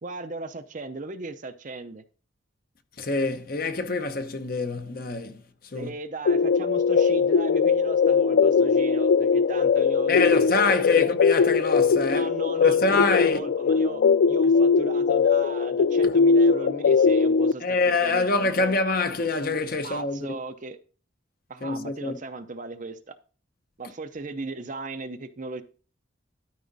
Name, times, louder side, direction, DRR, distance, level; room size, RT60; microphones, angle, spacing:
voice 1, 0.0-2.0 5.7-11.1 12.1-18.7 19.2-19.5 19.8-20.8 21.5-23.1 23.8-25.6, right 3 dB, 40° right, 0.7 m, -37 dB
voice 2, 3.0-5.4 5.7-5.9 10.1-12.3 12.6-13.4 17.6-20.2 21.6-22.1, left 3 dB, 50° left, 0.8 m, -25 dB
sound 1, 6.3-17.5, left 5 dB, 65° left, 0.3 m, -21 dB
12.5 x 4.9 x 4.0 m
head